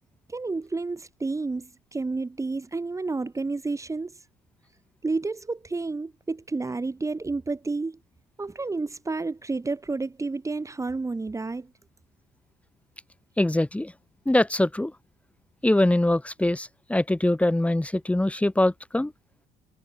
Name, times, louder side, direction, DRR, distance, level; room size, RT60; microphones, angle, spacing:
voice 1, 0.3-4.2 5.0-8.0 8.4-11.7, right 3 dB, 20° right, 3.1 m, -30 dB
voice 2, 13.4-13.9 14.3-14.9 15.6-19.1, left 1 dB, 5° left, 5.5 m, -23 dB
cardioid pair, 110°, 17 cm